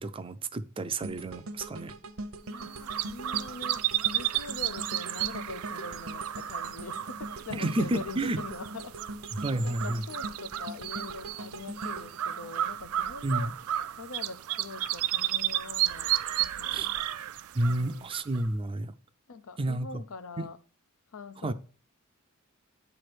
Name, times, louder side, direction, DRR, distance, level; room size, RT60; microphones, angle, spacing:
voice 1, 0.0-1.9 7.5-8.4 9.3-10.0 13.2-13.5 16.7-16.9 17.5-18.9 19.6-20.0 20.4-20.5 21.4-21.5, right 1 dB, 25° right, 0.4 m, -30 dB
sound 1, 1.0-13.2 13.6-13.8, right 2 dB, 70° right, 0.8 m, -42 dB
voice 2, 2.4-9.0 9.6-13.5 14.0-17.0 17.7-18.1 19.3-20.6 21.1-21.5, left 4 dB, 75° left, 0.6 m, -43 dB
sound 2, 2.5-18.6, right 13 dB, 85° right, 0.4 m, -33 dB
9.6 x 3.3 x 6.0 m
head